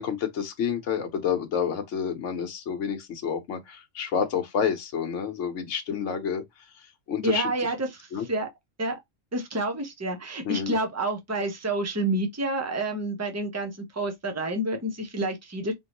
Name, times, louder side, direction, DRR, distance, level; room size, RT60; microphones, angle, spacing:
voice 1, 0.0-6.4 6.7-7.5 8.1-8.2 10.4-10.8, left 7 dB, 70° left, 1.2 m, -29 dB
voice 2, 7.2-8.5 8.8-9.0 9.3-15.7, right 2 dB, 15° right, 0.8 m, -29 dB
4.4 x 3.1 x 2.9 m
omnidirectional pair, 1.3 m